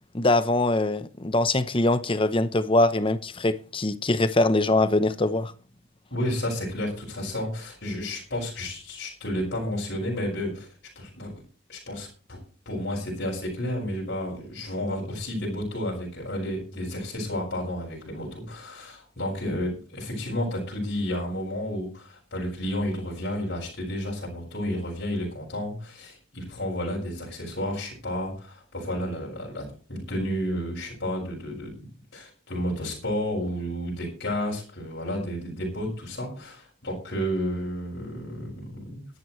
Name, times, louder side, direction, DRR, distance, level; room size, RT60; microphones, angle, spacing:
voice 1, 0.1-5.5, left 2 dB, 25° left, 0.8 m, -23 dB
voice 2, 6.1-10.7 11.0-11.3 11.7-12.4 12.7-31.7 32.1-39.1, left 1 dB, 55° left, 6.1 m, -31 dB
21.0 x 11.0 x 3.2 m
head